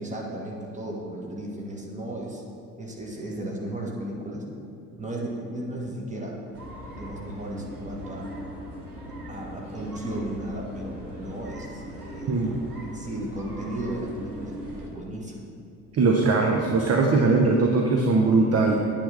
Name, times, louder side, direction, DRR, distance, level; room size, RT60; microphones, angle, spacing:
voice 1, 0.0-2.4 2.8-4.5 4.9-6.4 6.9-8.3 9.3-15.5, right 1 dB, 15° right, -2 dB, 1.6 m, -35 dB
sound 1, 6.5-14.9, equal, 85° right, 0.9 m, -40 dB
voice 2, 15.9-18.8, right 3 dB, 35° right, 1 dB, 0.8 m, -20 dB
8.8 x 3.5 x 6.5 m, 2.6 s
figure-of-eight pair, 45°, 45 cm